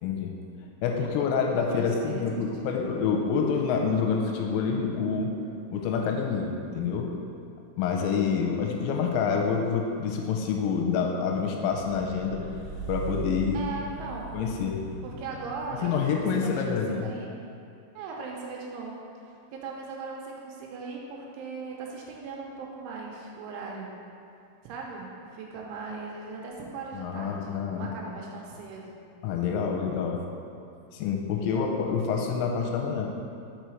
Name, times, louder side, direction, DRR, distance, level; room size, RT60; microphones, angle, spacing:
voice 1, 0.0-0.3 0.8-5.4 5.7-7.1 7.8-12.4 12.9-13.6 14.3-14.8 15.8-17.1 26.9-27.9 29.2-30.2 30.9-33.1, left 6 dB, 90° left, 1 dB, 3.2 m, -27 dB
voice 2, 1.6-2.9 13.5-14.5 15.0-17.3 17.9-19.0 19.5-23.9 24.6-29.0 31.4-31.7, right 4 dB, 85° right, -1 dB, 3.0 m, -39 dB
sound 1, 10.7-16.2, right 4 dB, 60° right, 2.1 m, -40 dB
6.8 x 4.8 x 4.4 m, 2.5 s
omnidirectional pair, 5.8 m